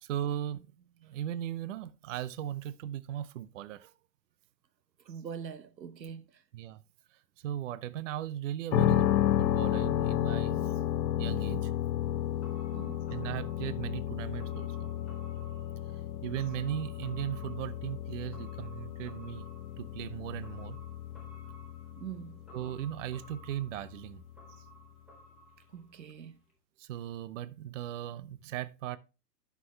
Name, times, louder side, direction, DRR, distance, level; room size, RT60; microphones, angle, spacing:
voice 1, 0.0-0.7 1.0-3.9 6.5-6.8 7.1-10.7 11.2-11.7 13.1-14.9 16.2-19.4 19.8-20.8 22.5-24.2 26.8-29.0, right 11 dB, 50° right, 0.7 m, -37 dB
voice 2, 5.1-6.3 12.7-13.0 22.0-22.4 25.7-26.4, right 7 dB, 90° right, 1.0 m, -43 dB
sound 1, 8.7-24.6, left 11 dB, 85° left, 0.7 m, -33 dB
sound 2, 12.0-26.2 26.5-26.6, right 1 dB, ahead, 3.9 m, -57 dB
11.0 x 6.1 x 3.2 m
hypercardioid pair, 130°, 50 cm